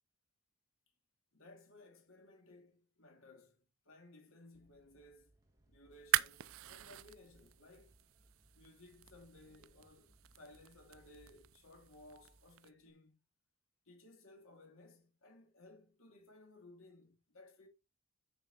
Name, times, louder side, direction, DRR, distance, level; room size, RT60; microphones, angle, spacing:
voice 1, 1.3-3.6 3.8-5.4 5.7-8.0 8.5-13.2 13.9-17.7, left 2 dB, 75° left, 3.0 m, -60 dB
sound 1, 4.5-12.9, right 1 dB, 15° right, 1.5 m, -68 dB
sound 2, 5.9-12.7, right 12 dB, 75° right, 0.5 m, -42 dB
9.2 x 5.5 x 4.1 m
head